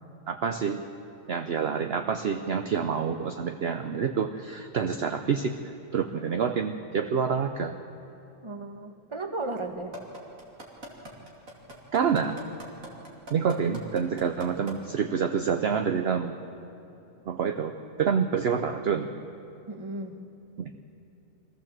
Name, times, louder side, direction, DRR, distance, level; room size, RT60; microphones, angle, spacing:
voice 1, 0.3-0.8 1.3-5.6 5.9-7.7 11.9-12.4 13.3-16.3 17.3-19.1 20.6-20.7, right 6 dB, 55° right, 6 dB, 0.9 m, -27 dB
voice 2, 8.4-10.0 17.2-17.3 19.7-20.2, right 2 dB, 20° right, 5 dB, 1.3 m, -35 dB
sound 1, 9.9-14.7 15.2-15.3, right 1 dB, 75° right, 3.1 m, -41 dB
24.0 x 15.0 x 7.5 m, 3.0 s
omnidirectional pair, 1.4 m